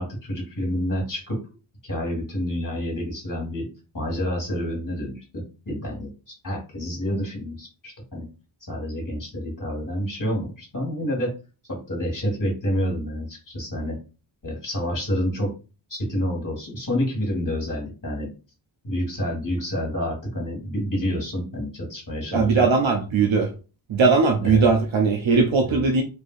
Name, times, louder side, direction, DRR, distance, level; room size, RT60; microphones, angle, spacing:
voice 1, 0.0-1.4 1.8-3.7 3.9-8.2 8.7-11.3 11.7-14.0 14.4-15.5 15.9-18.3 18.8-22.7 24.4-24.7 25.6-25.9, equal, 40° left, -1 dB, 1.6 m, -28 dB
voice 2, 22.3-23.5 23.9-26.0, right 4 dB, 75° right, 3 dB, 0.6 m, -19 dB
3.2 x 2.6 x 2.4 m, 0.33 s
wide cardioid pair, 75°, 47 cm